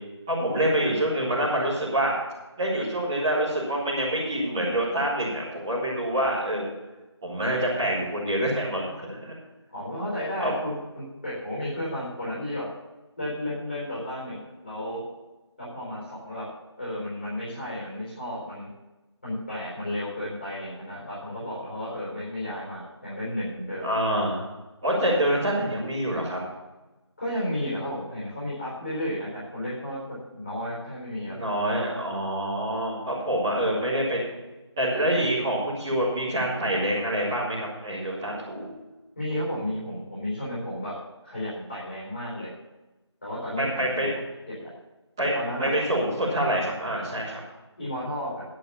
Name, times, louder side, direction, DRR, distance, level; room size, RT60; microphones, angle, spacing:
voice 1, 0.3-2.1 2.6-6.7 7.2-9.3 10.4-10.5 23.8-24.4 24.8-26.4 31.3-34.2 34.8-38.7 43.6-44.1 45.2-45.3 45.6-47.4, right 1 dB, 5° right, -11 dB, 2.2 m, -26 dB
voice 2, 9.7-12.7 13.2-15.0 15.6-16.5 16.8-18.7 19.2-23.9 27.2-31.5 39.2-40.9 41.2-42.5 43.2-44.1 44.6-44.7 45.3-45.8 47.8-48.4, left 1 dB, 30° left, -9 dB, 4.4 m, -33 dB
10.5 x 8.0 x 7.1 m, 1.1 s
figure-of-eight pair, 170°, 15 cm